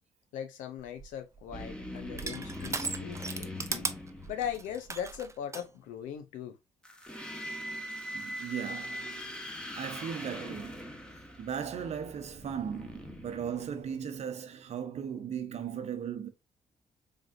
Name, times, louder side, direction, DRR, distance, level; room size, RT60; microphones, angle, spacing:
voice 1, 0.3-3.9 4.3-6.6, left 9 dB, 80° left, 0.7 m, -39 dB
Crushing, 0.8-5.7, right 3 dB, 20° right, 0.6 m, -38 dB
sound 1, 1.5-4.8 6.8-14.1, left 1 dB, 5° left, 1.0 m, -42 dB
voice 2, 8.1-9.4 9.8-11.0 11.4-16.3, right 8 dB, 55° right, 0.8 m, -37 dB
3.6 x 3.3 x 2.5 m
hypercardioid pair, 50°, 13 cm